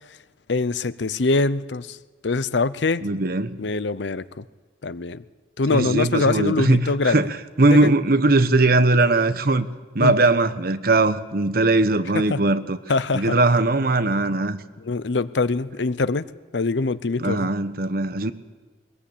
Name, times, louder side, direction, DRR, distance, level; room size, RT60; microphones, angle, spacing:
voice 1, 0.5-2.0 2.2-3.1 3.6-4.4 4.8-5.2 5.6-7.3 7.7-7.9 10.0-10.1 12.1-12.4 12.9-13.4 14.8-17.5, left 3 dB, 90° left, 0.8 m, -24 dB
voice 2, 3.0-3.6 5.7-7.3 7.6-9.7 9.9-12.8 13.1-14.6 17.2-18.3, right 2 dB, 55° right, 1.1 m, -20 dB
21.5 x 20.5 x 8.6 m
head